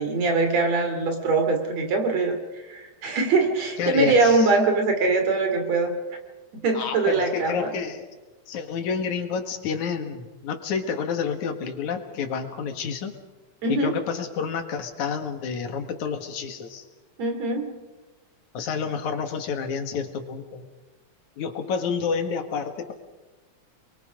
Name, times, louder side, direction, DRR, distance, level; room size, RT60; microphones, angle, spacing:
voice 1, 0.0-2.4 2.7-6.0 6.6-7.5 13.6-14.0 17.2-17.8, right 3 dB, 65° right, 5 dB, 4.0 m, -22 dB
voice 2, 3.8-4.5 6.7-8.1 8.5-13.2 13.7-16.8 18.5-20.6 21.4-22.9, left 6 dB, 85° left, 6 dB, 3.2 m, -29 dB
29.0 x 22.0 x 5.2 m, 1.2 s
omnidirectional pair, 3.3 m